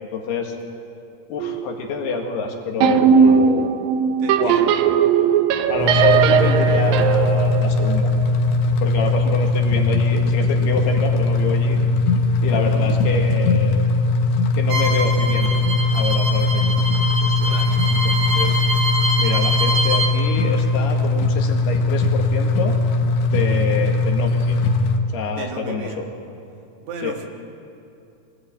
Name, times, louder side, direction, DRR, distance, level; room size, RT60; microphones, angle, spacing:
voice 1, 0.1-0.6 1.3-3.7 4.4-5.1 5.7-8.1 8.8-11.8 12.4-13.9 14.6-15.6 15.9-16.7 17.2-17.5 17.9-18.0 18.3-18.6 19.2-22.8 23.3-24.6 25.1-26.0 27.0-27.2, left 5 dB, 65° left, 2 dB, 3.6 m, -27 dB
sound 1, 1.4-1.8 2.0-2.3 2.8-8.5, right 7 dB, 85° right, 2.0 m, -18 dB
voice 2, 4.2-4.8 9.2-9.3 12.5-13.0 17.4-17.8 23.4-23.6 25.4-26.0 26.8-27.3, right 5 dB, 70° right, 3 dB, 3.6 m, -35 dB
sound 2, 5.8-25.0, left 2 dB, 80° left, 3.7 m, -19 dB
Bowed string instrument, 14.7-20.1, equal, 40° right, 3.1 m, -24 dB
25.5 x 17.5 x 8.7 m, 2.7 s
omnidirectional pair, 5.3 m